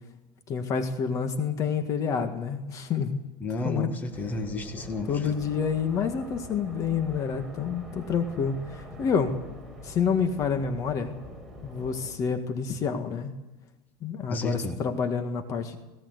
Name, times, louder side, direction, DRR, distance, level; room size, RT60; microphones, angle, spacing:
voice 1, 0.5-3.2 3.6-3.9 5.1-9.4 9.8-11.1 11.6-13.3 14.0-15.8, left 6 dB, 35° left, 7 dB, 1.8 m, -28 dB
voice 2, 3.4-5.3 14.3-14.8, left 2 dB, 20° left, 5 dB, 1.8 m, -32 dB
sound 1, 4.1-12.1, equal, ahead, 5.4 m, -44 dB
18.5 x 18.0 x 8.3 m, 1.0 s
cardioid pair, 155°, 9 cm